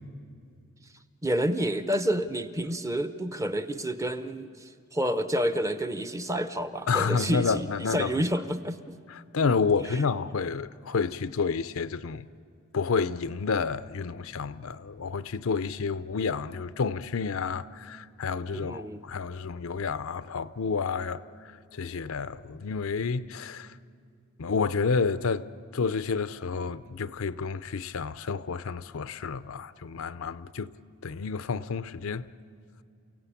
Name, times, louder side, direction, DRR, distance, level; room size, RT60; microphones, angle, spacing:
voice 1, 1.2-9.0 9.8-10.0 18.5-19.0, right 1 dB, 15° right, 0.7 m, -29 dB
voice 2, 6.9-8.1 9.1-12.3 12.7-21.2 21.7-23.7 24.4-30.8 31.0-32.3, left 5 dB, 65° left, 0.5 m, -30 dB
29.0 x 17.0 x 8.4 m
head